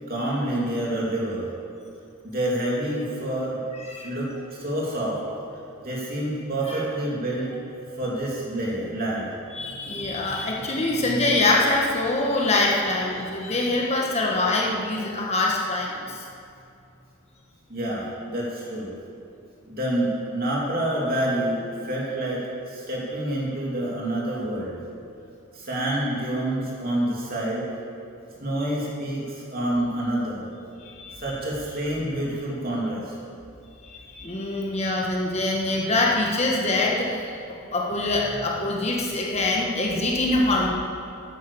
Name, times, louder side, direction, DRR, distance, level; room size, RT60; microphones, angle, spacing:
voice 1, 0.1-1.5 2.2-3.6 4.0-5.2 5.8-7.5 7.9-9.3 17.7-18.9 19.7-24.8 25.5-27.7 28.4-30.5 31.2-33.1, right 1 dB, 40° right, -4 dB, 2.9 m, -27 dB
voice 2, 3.8-4.1 6.7-6.8 9.5-16.2 30.8-31.2 33.8-37.3 37.7-40.7, left 2 dB, 30° left, -2 dB, 1.3 m, -24 dB
11.5 x 10.0 x 6.9 m, 2.5 s
head